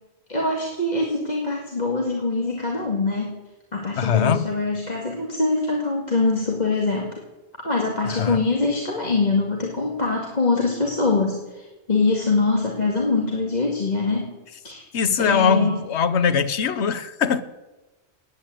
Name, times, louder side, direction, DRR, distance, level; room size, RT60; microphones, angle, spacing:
voice 1, 0.3-3.4 3.7-7.2 7.6-14.4 14.6-14.9 15.2-15.8, left 3 dB, 40° left, -1 dB, 2.3 m, -23 dB
voice 2, 4.0-4.5 8.0-8.4 14.9-17.4, left 7 dB, 75° left, 12 dB, 1.2 m, -21 dB
15.5 x 9.7 x 9.1 m, 1.1 s
omnidirectional pair, 1.1 m